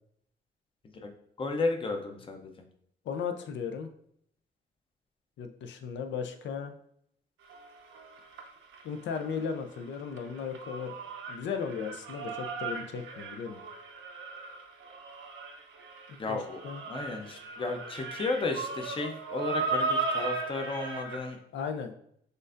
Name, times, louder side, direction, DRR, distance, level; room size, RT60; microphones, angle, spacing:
voice 1, 1.4-2.5 16.2-16.6 16.9-21.4, left 3 dB, 25° left, 3 dB, 0.7 m, -33 dB
voice 2, 3.1-3.9 5.4-6.7 8.8-10.9 11.3-13.6 16.1-16.8 21.5-21.9, left 6 dB, 65° left, 7 dB, 0.6 m, -36 dB
sound 1, 7.5-9.5 9.8-21.3, right 4 dB, 90° right, 0.8 m, -37 dB
6.3 x 2.6 x 2.5 m, 0.69 s
cardioid pair, 90°, 20 cm